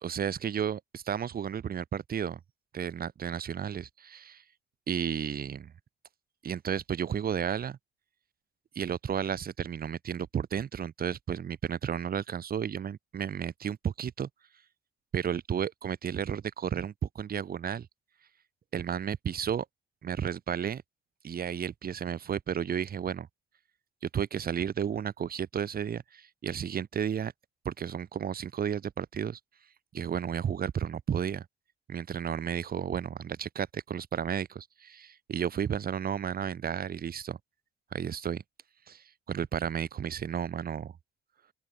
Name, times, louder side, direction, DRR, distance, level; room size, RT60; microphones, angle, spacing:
voice 1, 0.0-2.4 2.7-4.4 4.9-5.7 6.4-7.8 8.7-14.3 15.1-17.9 18.7-19.6 20.0-20.8 21.2-23.3 24.0-27.3 27.6-29.4 29.9-31.4 31.9-37.4 37.9-38.4 38.9-40.9, right 8 dB, 50° right, 1.4 m, -33 dB
open air
cardioid pair, 90°, 20 cm